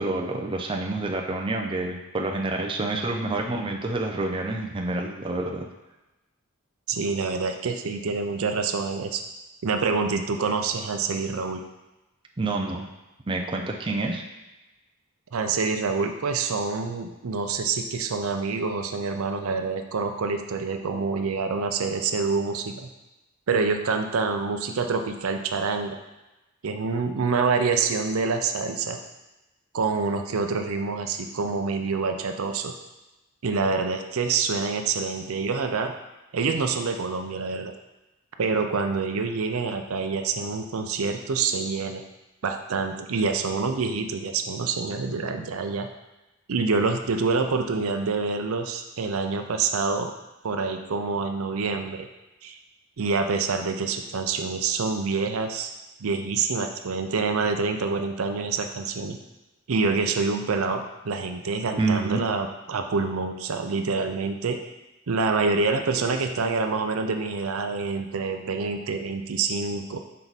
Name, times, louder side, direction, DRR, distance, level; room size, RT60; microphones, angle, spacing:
voice 1, 0.0-5.7 12.4-12.9 13.3-14.2 61.8-62.2, right 2 dB, 25° right, 1 dB, 0.5 m, -28 dB
voice 2, 6.9-9.2 9.6-11.6 15.3-22.9 23.5-26.0 26.6-29.0 29.7-32.7 33.4-35.9 36.3-37.7 38.4-42.0 42.4-45.9 46.5-50.1 50.4-52.1 52.4-52.6 53.0-55.7 56.0-59.2 59.7-64.6 65.1-70.0, right 4 dB, 75° right, 6 dB, 0.5 m, -26 dB
5.6 x 4.6 x 4.0 m, 1.0 s
head